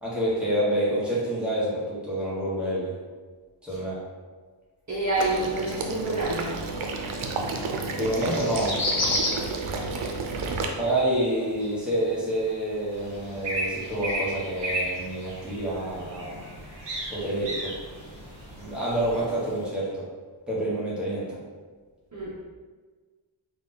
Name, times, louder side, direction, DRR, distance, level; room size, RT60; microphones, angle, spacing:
voice 1, 0.0-2.9 3.6-4.0 8.0-8.7 10.7-16.3 17.1-17.7 18.6-20.0 20.5-21.3, right 1 dB, ahead, -9 dB, 1.0 m, -27 dB
voice 2, 4.9-6.6 22.1-22.3, right 2 dB, 35° right, -7 dB, 0.7 m, -27 dB
Water / Liquid, 5.2-10.7, right 3 dB, 85° right, 0.6 m, -31 dB
sound 1, 5.4-19.7, left 2 dB, 70° left, 1.0 m, -38 dB
sound 2, 12.9-19.2, right 1 dB, 60° right, 1.0 m, -35 dB
3.6 x 2.4 x 3.8 m, 1.4 s
wide cardioid pair, 165°, 47 cm